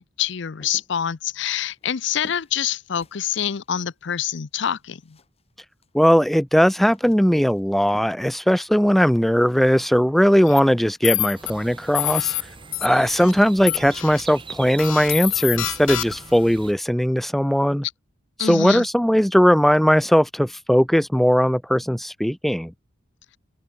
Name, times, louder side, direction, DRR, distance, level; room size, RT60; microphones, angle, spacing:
voice 1, 0.0-5.2 18.4-18.9, left 9 dB, 65° left, 0.6 m, -26 dB
sound 1, 0.6-5.5 5.8-9.8, left 1 dB, 30° left, 6.7 m, -52 dB
voice 2, 5.9-12.3 12.8-17.9 18.4-22.7, equal, ahead, 0.4 m, -19 dB
sound 2, 10.5-10.6 11.0-11.5 11.9-12.4 12.7-13.3 13.7-14.2 14.8-16.4, left 15 dB, 90° left, 1.3 m, -26 dB
sound 3, 11.3-16.7, right 4 dB, 25° right, 1.5 m, -41 dB
head